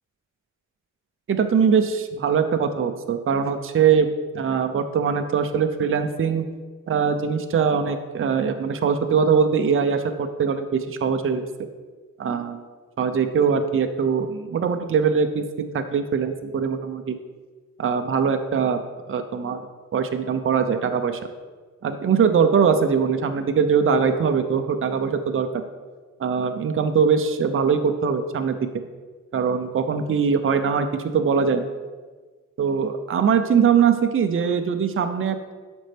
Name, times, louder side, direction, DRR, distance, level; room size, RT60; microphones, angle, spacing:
voice 1, 1.3-4.1 4.3-6.5 6.9-11.5 12.2-12.6 13.0-17.2 17.8-18.8 19.1-19.6 19.9-21.2 21.8-25.5 26.2-28.7 29.3-31.7 32.6-35.5, right 6 dB, 40° right, 7 dB, 0.5 m, -22 dB
11.5 x 5.2 x 3.4 m, 1.4 s
wide cardioid pair, 150°, 32 cm